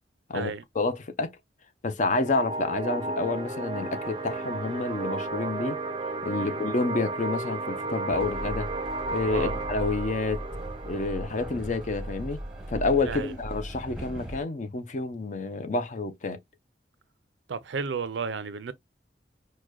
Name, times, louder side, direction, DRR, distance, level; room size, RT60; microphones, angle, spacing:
voice 1, 0.3-1.3 1.8-5.8 6.2-8.7 9.1-10.4 10.8-12.4 12.7-16.4, left 3 dB, 40° left, 0.5 m, -29 dB
sound 1, 2.2-13.3, right 3 dB, 25° right, 0.5 m, -34 dB
Train, 8.1-14.4, equal, 5° right, 0.8 m, -38 dB
voice 2, 17.5-18.7, right 5 dB, 75° right, 0.5 m, -33 dB
4.8 x 2.2 x 2.2 m
head